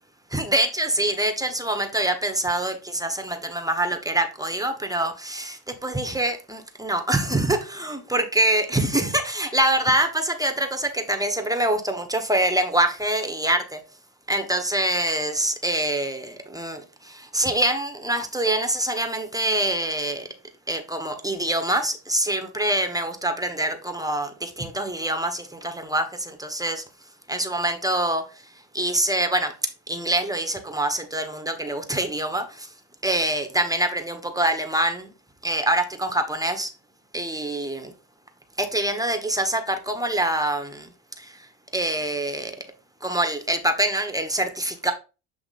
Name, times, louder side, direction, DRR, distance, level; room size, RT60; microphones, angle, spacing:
voice 1, 0.3-13.8 14.3-20.3 20.7-26.8 27.3-28.3 28.7-29.5 29.9-32.7 33.0-35.1 35.4-36.7 37.1-37.9 38.6-40.9 41.2-42.6 43.0-44.9, right 1 dB, 5° right, 1.2 m, -25 dB
7.9 x 2.9 x 4.2 m
supercardioid pair, 75°, 48 cm